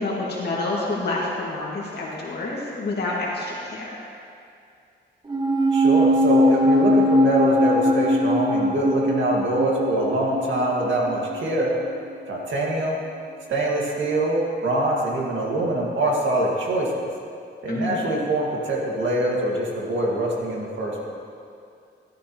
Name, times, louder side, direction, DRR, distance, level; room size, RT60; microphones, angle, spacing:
voice 1, 0.0-4.0 17.7-18.0, left 2 dB, 65° left, -5 dB, 2.1 m, -28 dB
sound 1, 5.3-11.9 12.1-12.2, equal, 20° right, 0.8 m, -21 dB
voice 2, 5.7-11.7 12.3-13.0 13.5-17.1 17.6-21.1, right 1 dB, 85° right, -3 dB, 2.1 m, -24 dB
14.0 x 12.5 x 3.1 m, 2.4 s
wide cardioid pair, 155°, 19 cm